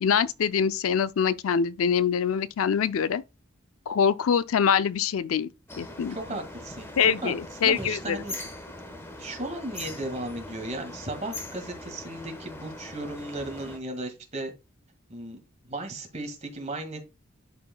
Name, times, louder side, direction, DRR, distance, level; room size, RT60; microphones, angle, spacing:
voice 1, 0.0-3.2 3.9-5.5 5.8-6.4 7.0-8.2, left 7 dB, 85° left, 0.4 m, -24 dB
sound 1, 5.7-13.8, left 1 dB, 10° left, 1.1 m, -41 dB
voice 2, 6.1-7.3 7.6-8.4 9.2-14.5 15.1-15.4 15.7-17.0, right 2 dB, 35° right, 1.8 m, -35 dB
11.0 x 4.8 x 2.2 m
head